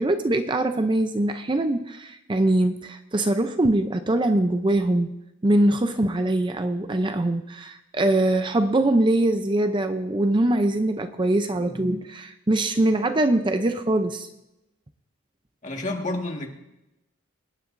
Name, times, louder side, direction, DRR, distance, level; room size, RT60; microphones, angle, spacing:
voice 1, 0.0-5.1 5.4-14.3, right 1 dB, 25° right, 8 dB, 0.5 m, -23 dB
voice 2, 15.6-16.5, left 2 dB, 40° left, 1 dB, 1.8 m, -29 dB
25.0 x 9.9 x 2.6 m, 0.92 s
head